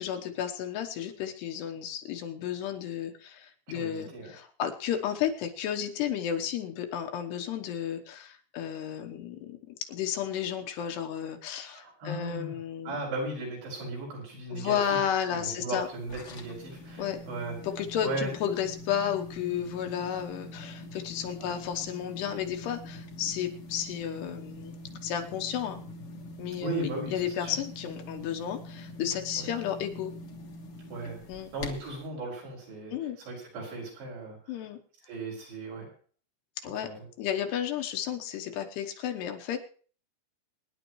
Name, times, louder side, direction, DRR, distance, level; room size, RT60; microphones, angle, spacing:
voice 1, 0.0-9.6 9.9-13.0 14.5-15.9 17.0-17.2 17.6-24.7 25.0-25.8 26.4-30.1 31.3-31.5 32.9-33.2 34.5-34.8 36.6-36.9 37.2-39.6, left 9 dB, 75° left, 4 dB, 3.1 m, -32 dB
voice 2, 3.7-4.3 11.8-12.6 12.9-15.0 15.3-17.6 18.0-18.3 21.4-21.5 26.6-27.6 29.4-29.5 30.9-31.2 31.5-34.4 35.0-35.9 36.8-37.0, right 2 dB, 70° right, -3 dB, 7.9 m, -36 dB
sound 1, 15.8-32.1, left 1 dB, 55° left, 1.7 m, -44 dB
24.5 x 10.5 x 3.1 m, 0.42 s
omnidirectional pair, 5.0 m